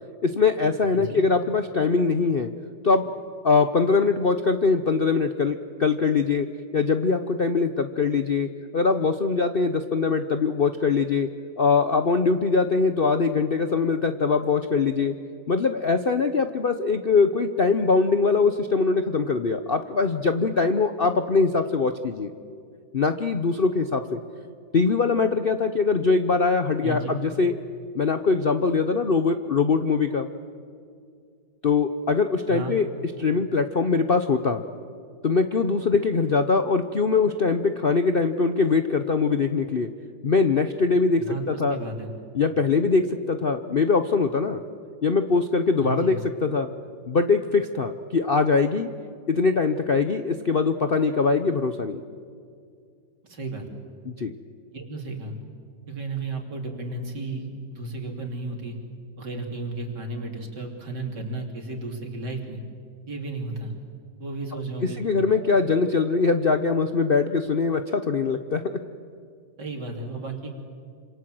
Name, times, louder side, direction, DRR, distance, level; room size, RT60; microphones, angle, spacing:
voice 1, 0.2-2.5 2.8-3.1 3.4-6.5 6.7-11.3 11.6-15.1 15.5-22.3 22.9-24.2 24.7-27.6 27.9-30.3 31.6-32.9 33.2-34.6 35.2-39.9 40.2-41.8 42.3-44.6 45.0-46.7 47.1-48.9 49.3-52.0 54.1-54.3 65.0-68.6, left 4 dB, 45° left, 8 dB, 0.7 m, -22 dB
voice 2, 0.9-1.3 26.8-27.2 32.5-32.8 41.2-42.1 45.8-46.2 53.2-53.7 54.7-55.4 55.9-58.8 59.2-62.6 63.1-63.7 64.2-65.5 69.6-70.5, right 2 dB, 65° right, 2 dB, 3.8 m, -33 dB
27.5 x 26.5 x 7.8 m, 2.3 s
omnidirectional pair, 2.0 m